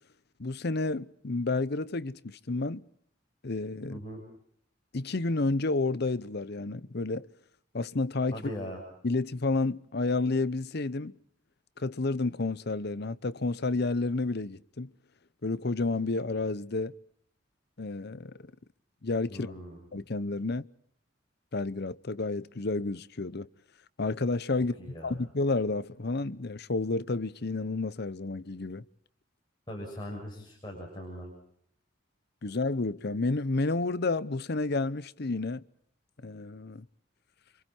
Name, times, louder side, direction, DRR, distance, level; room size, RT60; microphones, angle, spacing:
voice 1, 0.4-2.8 3.4-4.0 4.9-7.3 7.7-8.4 9.0-11.1 11.8-14.9 15.4-17.0 17.8-18.3 19.0-19.5 19.9-20.6 21.5-23.5 24.0-24.7 25.0-28.8 32.4-35.6 36.2-36.8, left 3 dB, 55° left, 0.8 m, -30 dB
voice 2, 3.9-4.2 8.3-8.8 19.3-19.9 24.8-25.2 29.7-31.3, equal, 25° left, 7.0 m, -40 dB
30.0 x 26.5 x 4.5 m
head